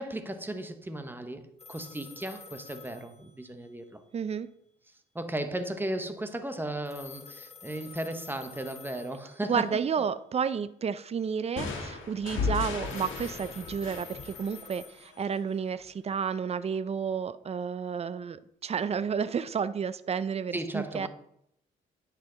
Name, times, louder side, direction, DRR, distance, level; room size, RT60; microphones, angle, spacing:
voice 1, 0.0-4.0 4.9-10.0 20.5-21.1, right 1 dB, 10° right, 0.9 m, -36 dB
sound 1, 1.6-3.9 6.9-9.7 12.9-15.8, left 5 dB, 30° left, 1.1 m, -49 dB
voice 2, 4.1-4.5 9.5-21.1, right 6 dB, 30° right, 0.5 m, -31 dB
sound 2, 11.6-15.2, left 5 dB, 75° left, 1.7 m, -35 dB
9.7 x 5.8 x 3.8 m
cardioid pair, 90°, 20 cm